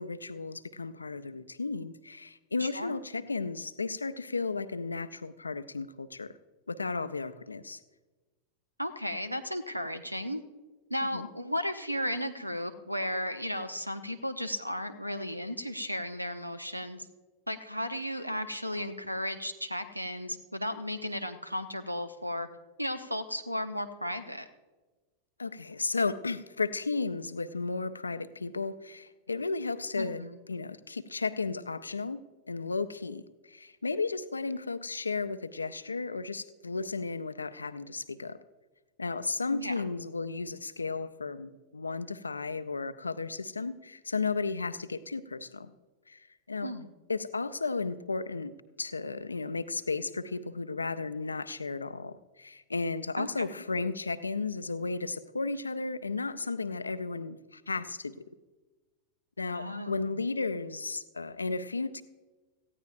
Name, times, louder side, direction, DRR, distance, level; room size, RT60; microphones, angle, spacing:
voice 1, 0.0-6.3 6.7-7.8 11.1-11.3 25.4-30.2 30.5-32.2 32.5-38.4 39.0-45.7 46.1-46.7 47.1-58.2 59.4-62.0, left 4 dB, 80° left, 13 dB, 0.5 m, -34 dB
voice 2, 2.6-2.9 8.8-10.4 10.9-17.1 17.5-22.5 22.8-24.5 30.0-30.4 39.5-39.8 46.6-46.9 53.2-53.5 59.5-60.1, equal, 90° right, 13 dB, 0.7 m, -34 dB
18.5 x 14.5 x 2.5 m, 1.2 s
figure-of-eight pair, 90°, 0 cm